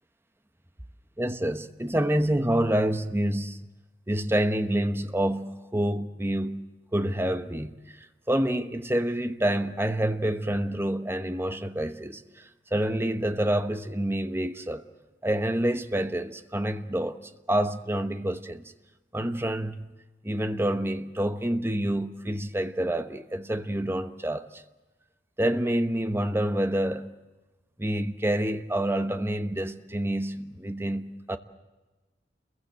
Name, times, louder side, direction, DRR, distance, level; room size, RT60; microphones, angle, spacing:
voice 1, 1.2-3.6 4.1-6.7 6.9-14.8 15.2-17.2 17.5-18.7 19.1-19.9 20.2-24.6 25.4-27.1 27.8-31.4, right 1 dB, 15° right, 1.1 m, -28 dB
29.0 x 22.5 x 7.5 m
head